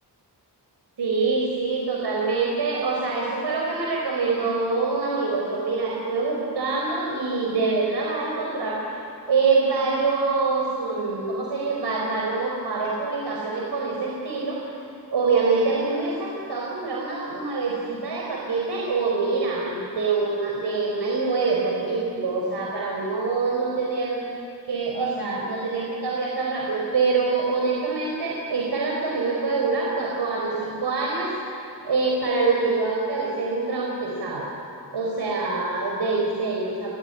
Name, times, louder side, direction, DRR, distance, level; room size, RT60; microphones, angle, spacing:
voice 1, 1.0-9.0 9.3-14.6 15.1-24.2 24.7-31.3 31.8-34.5 34.9-36.9, right 4 dB, 75° right, -2 dB, 4.3 m, -25 dB
29.0 x 20.0 x 10.0 m, 2.7 s
wide cardioid pair, 130°, 41 cm